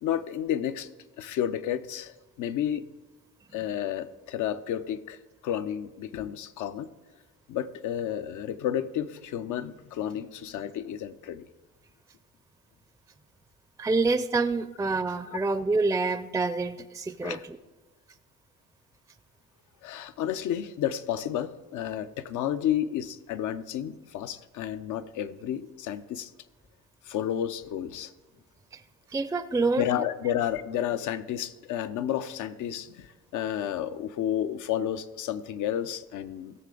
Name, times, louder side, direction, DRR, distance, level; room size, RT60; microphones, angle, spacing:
voice 1, 0.0-0.9 1.2-2.8 3.5-5.2 5.4-6.9 7.5-11.5 17.2-17.4 19.8-26.3 27.1-28.1 29.8-36.5, left 10 dB, 80° left, 12 dB, 0.6 m, -31 dB
voice 2, 13.8-17.4 28.7-28.8 29.1-29.8, right 3 dB, 10° right, 11 dB, 0.4 m, -27 dB
16.0 x 6.7 x 3.8 m, 1.2 s
cardioid pair, 90°, 30 cm